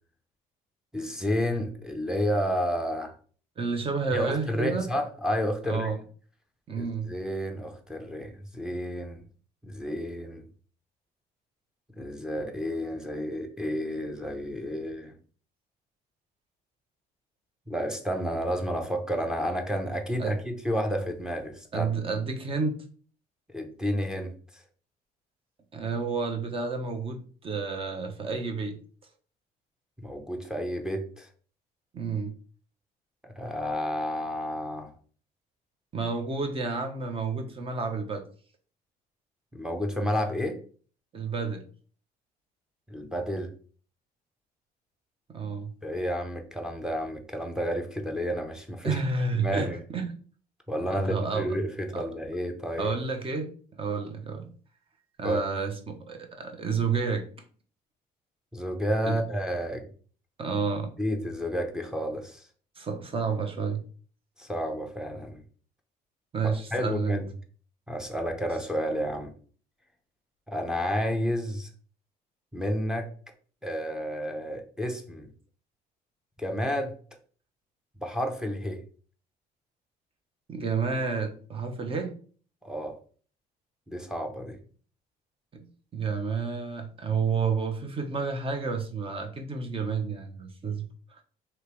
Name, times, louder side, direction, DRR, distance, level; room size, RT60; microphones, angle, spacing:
voice 1, 0.9-3.1 4.1-5.9 6.8-9.2 9.6-10.5 12.0-15.1 17.7-21.9 23.5-24.6 30.0-31.3 33.2-34.9 39.5-40.6 42.9-43.5 45.8-49.0 49.3-49.8 50.7-52.9 55.2-55.4 58.5-59.9 61.0-62.5 64.4-65.4 66.7-67.3 67.9-69.3 70.5-71.7 72.5-73.1 73.6-75.3 76.4-76.9 78.0-78.8 82.6-82.9 83.9-84.6, equal, 5° right, 4 dB, 0.7 m, -31 dB
voice 2, 3.6-4.9 5.7-6.0 6.7-7.1 20.2-20.4 21.7-22.8 25.7-28.8 31.9-32.3 35.9-38.2 41.1-41.6 45.3-45.7 48.8-50.1 50.9-51.6 51.9-52.1 52.8-53.5 53.8-54.5 55.2-57.3 59.1-59.2 60.4-60.9 62.8-63.8 66.3-67.2 80.5-82.1 85.5-85.6 85.9-91.2, right 4 dB, 35° right, 5 dB, 0.9 m, -30 dB
3.2 x 3.0 x 4.5 m, 0.43 s
cardioid pair, 110°, 17 cm